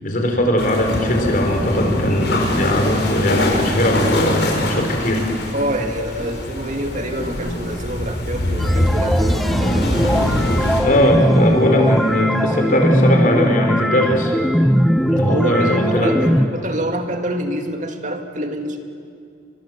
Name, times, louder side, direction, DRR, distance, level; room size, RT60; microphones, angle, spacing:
voice 1, 0.0-5.3 10.8-14.3 15.1-16.1, equal, 50° left, 3 dB, 5.0 m, -19 dB
sound 1, 0.6-10.8, left 1 dB, 75° left, 6.4 m, -23 dB
voice 2, 5.5-10.0 15.2-18.8, right 1 dB, 45° right, 4 dB, 2.2 m, -26 dB
sound 2, 8.6-16.5, equal, ahead, 0.9 m, -20 dB
30.0 x 24.0 x 8.1 m, 2.3 s
head